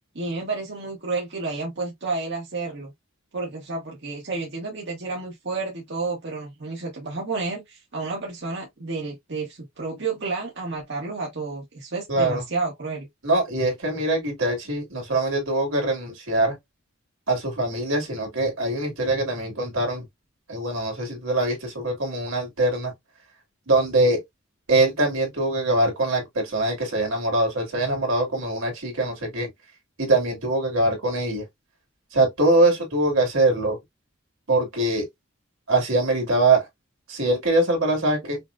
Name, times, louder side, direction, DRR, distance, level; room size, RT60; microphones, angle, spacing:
voice 1, 0.1-2.9 3.3-13.1, right 3 dB, 55° right, 1.1 m, -31 dB
voice 2, 12.1-12.4 13.2-16.6 17.3-20.0 20.5-22.9 23.7-24.2 24.7-29.5 30.0-31.4 32.1-33.8 34.5-35.1 35.7-36.7 37.1-38.4, right 2 dB, 80° right, 2.2 m, -23 dB
5.6 x 2.1 x 2.4 m
head